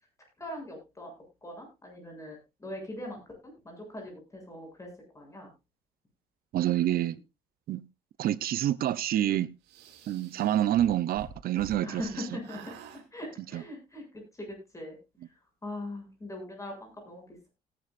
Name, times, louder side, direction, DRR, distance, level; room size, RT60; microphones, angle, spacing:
voice 1, 0.4-1.1 1.4-5.5 7.1-7.2 10.3-10.5 11.8-12.6 13.1-15.0 15.6-17.5, left 1 dB, 20° left, 7.6 m, -41 dB
voice 2, 6.5-7.2 7.7-7.8 8.2-9.5 10.1-12.0 13.5-13.6, right 12 dB, 60° right, 0.8 m, -27 dB
sound 1, 9.7-12.1 12.4-13.0, right 7 dB, 85° right, 2.6 m, -48 dB
17.5 x 11.0 x 2.6 m
cardioid pair, 110°, 17 cm